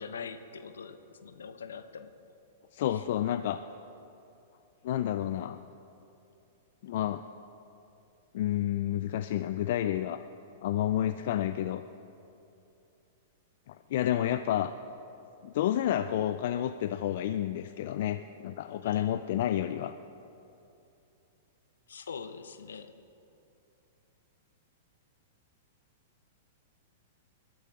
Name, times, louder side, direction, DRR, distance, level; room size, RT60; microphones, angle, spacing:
voice 1, 0.0-2.1 18.8-19.2 21.9-22.9, left 6 dB, 80° left, 11 dB, 0.8 m, -43 dB
voice 2, 2.7-3.6 4.8-5.6 6.8-7.2 8.3-10.2 10.6-11.8 13.7-14.7 15.4-19.9, left 12 dB, 60° left, 11 dB, 0.4 m, -30 dB
21.5 x 12.5 x 3.7 m, 2.8 s
hypercardioid pair, 115°, 0 cm